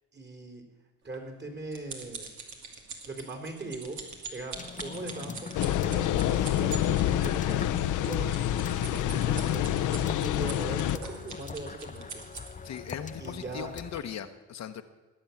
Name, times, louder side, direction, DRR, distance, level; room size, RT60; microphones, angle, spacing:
voice 1, 0.1-0.6 1.0-2.3 3.1-4.0 4.3-12.2 13.2-13.7, right 2 dB, 35° right, 5 dB, 3.6 m, -40 dB
sound 1, 1.1-12.8 13.4-13.6 14.0-14.1, right 5 dB, 70° right, 2.6 m, -43 dB
sound 2, 4.5-14.0, left 5 dB, 25° left, 0.8 m, -42 dB
sound 3, 5.5-11.0, left 12 dB, 85° left, 0.7 m, -27 dB
voice 2, 12.6-14.8, left 9 dB, 60° left, 7 dB, 1.0 m, -39 dB
20.5 x 7.9 x 7.1 m, 1.3 s
cardioid pair, 90°, 30 cm